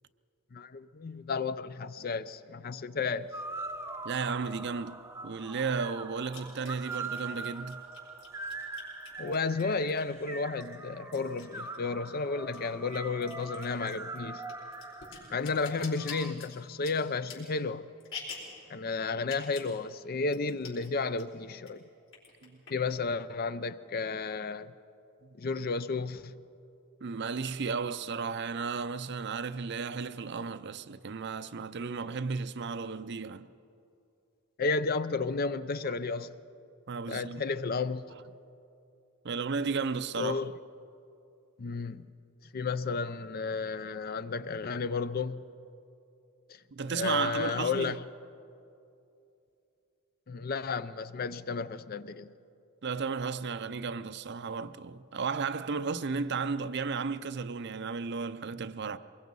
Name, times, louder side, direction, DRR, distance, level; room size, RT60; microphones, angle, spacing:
voice 1, 0.5-3.3 9.2-14.5 15.3-17.9 18.7-21.8 22.7-24.7 25.3-26.3 34.6-36.3 37.1-38.0 40.2-40.5 41.6-42.1 42.5-45.4 46.5-46.6 46.9-48.0 50.3-52.3, left 4 dB, 40° left, 0.5 m, -32 dB
sound 1, 3.0-16.3, right 3 dB, 10° right, 0.7 m, -42 dB
voice 2, 4.0-7.8 22.4-22.5 27.0-33.5 36.9-37.4 39.2-40.4 46.7-48.0 52.8-59.0, right 5 dB, 50° right, 0.5 m, -34 dB
sound 2, 4.5-4.6 6.3-10.2 10.6-12.2 12.4-18.6 19.2-19.7 20.0-20.1 20.3-20.9 21.2-21.7 22.1-23.0, left 5 dB, 60° left, 5.1 m, -47 dB
23.5 x 21.5 x 5.4 m
head